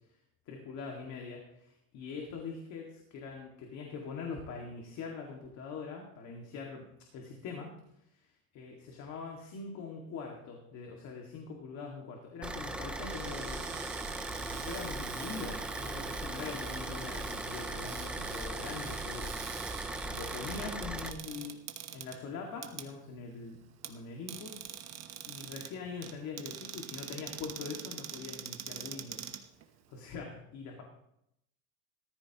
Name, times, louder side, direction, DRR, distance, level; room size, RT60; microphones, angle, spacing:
voice 1, 0.5-6.9 7.1-7.7 8.1-13.7 14.3-21.6 21.9-23.6 23.8-24.5 24.8-24.9 25.3-29.3 29.9-30.8, left 4 dB, 40° left, 0 dB, 2.2 m, -43 dB
Car / Idling, 12.4-21.1, right 1 dB, 5° right, 0.4 m, -39 dB
Cupboard open or close, 13.0-30.1, right 11 dB, 35° right, 1.2 m, -45 dB
18.5 x 14.0 x 3.0 m, 0.78 s
cardioid pair, 160°, 43 cm